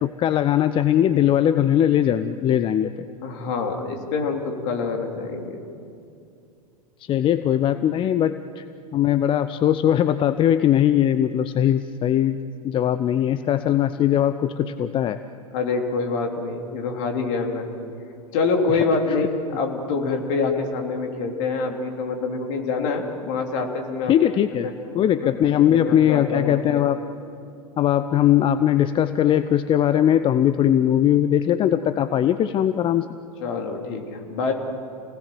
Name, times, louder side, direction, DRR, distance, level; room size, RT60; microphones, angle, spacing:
voice 1, 0.0-3.1 7.0-8.7 8.9-15.2 18.7-19.2 24.1-24.7 24.9-27.0 27.8-33.1, left 10 dB, 25° left, 12 dB, 0.7 m, -20 dB
voice 2, 3.2-5.6 15.5-17.7 18.3-24.1 24.6-24.7 25.2-25.4 25.7-26.8 33.4-34.5, left 4 dB, 50° left, 2 dB, 3.4 m, -26 dB
29.0 x 19.0 x 7.7 m, 2.5 s
figure-of-eight pair, 95°, 20 cm